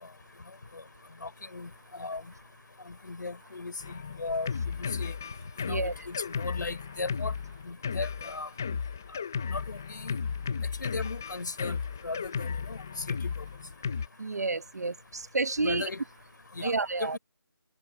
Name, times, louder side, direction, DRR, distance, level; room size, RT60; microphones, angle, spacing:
voice 1, 1.2-2.2 2.9-5.2 5.6-7.3 7.7-8.5 9.4-10.2 10.8-11.8 12.0-12.8 13.2-13.3 15.6-16.0 16.5-16.7 17.0-17.2, left 3 dB, 50° left, 4.6 m, -37 dB
Drum kit, 3.8-14.1, left 6 dB, 10° left, 0.5 m, -34 dB
voice 2, 14.2-15.9 16.6-17.2, right 3 dB, 45° right, 1.1 m, -30 dB
figure-of-eight pair, 170°, 12 cm